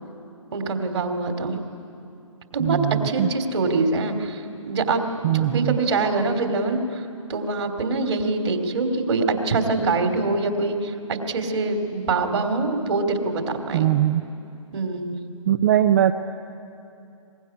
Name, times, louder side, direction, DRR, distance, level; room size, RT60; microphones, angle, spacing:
voice 1, 0.5-1.6 2.5-4.4 4.7-5.0 5.3-7.0 7.3-13.9 14.7-15.2, right 3 dB, 55° right, 5 dB, 3.0 m, -24 dB
voice 2, 2.6-3.3 5.2-5.8 13.7-14.2 15.5-16.1, right 12 dB, 30° right, 10 dB, 0.6 m, -20 dB
23.5 x 22.0 x 9.8 m, 2.7 s
figure-of-eight pair, 135°, 18 cm